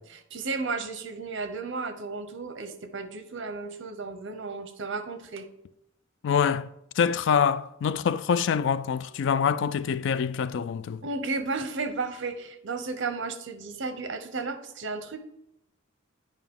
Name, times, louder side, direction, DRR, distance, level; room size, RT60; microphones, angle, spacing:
voice 1, 0.1-5.5 11.0-15.2, right 3 dB, 65° right, 0.8 m, -33 dB
voice 2, 6.2-6.7 7.0-11.0, left 7 dB, 65° left, 0.3 m, -25 dB
9.2 x 5.1 x 3.7 m
head